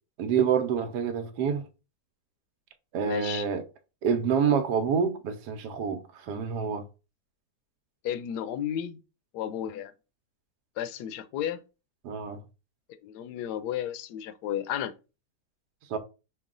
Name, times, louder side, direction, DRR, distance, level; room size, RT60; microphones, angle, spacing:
voice 1, 0.2-1.7 2.9-3.6 4.0-6.8 12.0-12.4 15.9-16.0, right 7 dB, 90° right, 1.3 m, -27 dB
voice 2, 3.0-3.5 8.0-9.0 9.3-9.9 10.8-11.6 13.0-14.9, left 10 dB, 80° left, 1.1 m, -33 dB
5.4 x 2.3 x 3.7 m
omnidirectional pair, 1.7 m